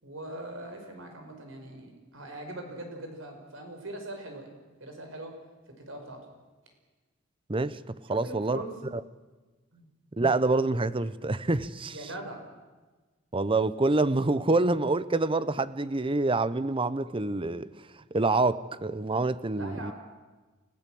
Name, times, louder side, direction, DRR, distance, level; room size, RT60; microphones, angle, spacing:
voice 1, 0.0-4.5 4.8-5.3 5.9-6.2 8.1-8.7 9.7-9.9 11.9-12.4 19.5-19.9, right 1 dB, 70° right, 5.5 m, -41 dB
voice 2, 7.5-8.6 10.2-12.1 13.3-17.7 18.1-19.9, right 2 dB, 25° right, 0.8 m, -26 dB
29.5 x 16.0 x 7.8 m
head